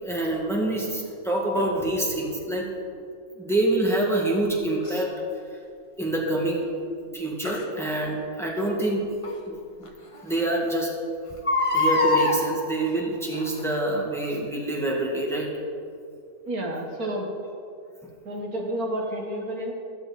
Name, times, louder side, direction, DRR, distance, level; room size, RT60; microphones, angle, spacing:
voice 1, 0.0-2.7 3.4-5.1 6.0-6.7 7.1-9.1 9.5-9.6 10.2-10.9 11.7-15.5, right 1 dB, ahead, -2 dB, 1.9 m, -26 dB
Crying sobbing, 4.8-5.0 7.4-7.6 9.2-9.3 9.8-9.9 10.2-10.3 11.3-12.4 13.3-13.7 14.2-14.3, left 2 dB, 25° left, 1.0 m, -23 dB
voice 2, 16.5-17.3 18.3-19.7, right 1 dB, 70° right, 1 dB, 2.0 m, -30 dB
15.0 x 12.0 x 4.1 m, 2.4 s
omnidirectional pair, 1.6 m